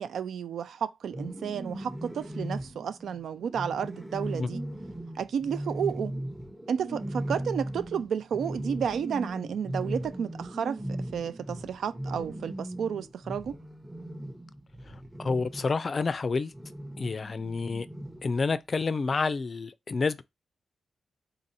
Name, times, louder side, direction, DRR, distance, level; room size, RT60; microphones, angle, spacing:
voice 1, 0.0-4.6 5.2-6.1 6.7-13.6, right 7 dB, 85° right, 0.3 m, -32 dB
sound 1, 1.0-15.8 16.5-18.4, right 1 dB, 10° right, 0.8 m, -38 dB
voice 2, 15.2-16.5 17.0-17.9 18.2-20.2, left 4 dB, 45° left, 0.4 m, -29 dB
3.8 x 2.6 x 4.1 m
cardioid pair, 75°, 0 cm